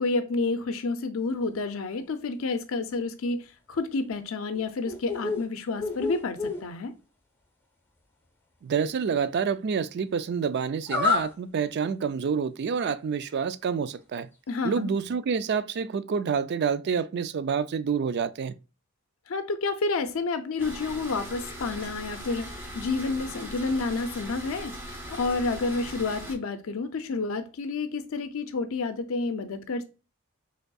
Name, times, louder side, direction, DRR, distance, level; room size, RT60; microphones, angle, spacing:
voice 1, 0.0-6.9 14.5-14.9 19.3-24.7 25.1-29.8, left 3 dB, 70° left, 0.5 m, -29 dB
sound 1, 4.5-5.4 5.8-6.6 10.9-11.3, left 4 dB, 10° left, 0.9 m, -28 dB
voice 2, 8.6-14.3 14.6-18.6, right 6 dB, 55° right, 0.3 m, -28 dB
sound 2, 20.6-26.3, equal, 10° right, 1.6 m, -40 dB
5.2 x 3.5 x 2.3 m
head